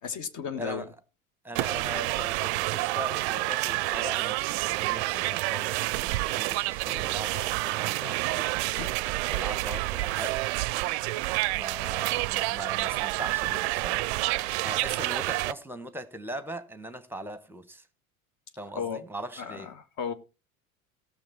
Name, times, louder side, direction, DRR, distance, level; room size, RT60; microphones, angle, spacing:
voice 1, 0.0-0.9 8.8-8.9 18.7-19.0 19.4-20.1, left 6 dB, 45° left, 1.7 m, -34 dB
voice 2, 0.6-0.9 1.4-8.5 9.3-10.4 11.5-14.1 14.4-17.9 18.6-19.7, right 1 dB, 5° right, 1.2 m, -40 dB
sound 1, 1.6-15.5, right 21 dB, 50° right, 0.5 m, -29 dB
17.5 x 6.6 x 4.1 m
figure-of-eight pair, 70°, 43 cm